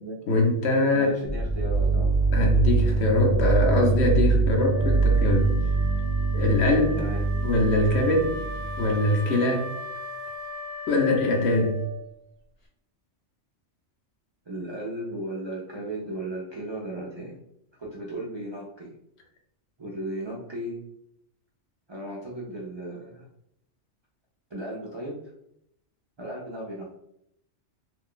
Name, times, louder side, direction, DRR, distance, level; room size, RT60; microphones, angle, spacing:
voice 1, 0.3-1.2 2.3-5.5 6.3-7.0 7.4-8.3 8.8-9.7 10.9-11.8, left 2 dB, 65° left, 2 dB, 0.9 m, -22 dB
voice 2, 0.9-2.2 7.0-7.2 14.5-17.4 17.8-18.9 19.8-20.8 21.9-23.2 24.5-25.2 26.2-26.9, right 1 dB, 45° right, -4 dB, 0.3 m, -35 dB
sound 1, 1.3-9.0, right 3 dB, 80° left, 1.2 m, -24 dB
Wind instrument woodwind instrument, 4.5-12.1, equal, 40° left, 0.5 m, -38 dB
2.5 x 2.2 x 3.6 m, 0.77 s
omnidirectional pair, 1.2 m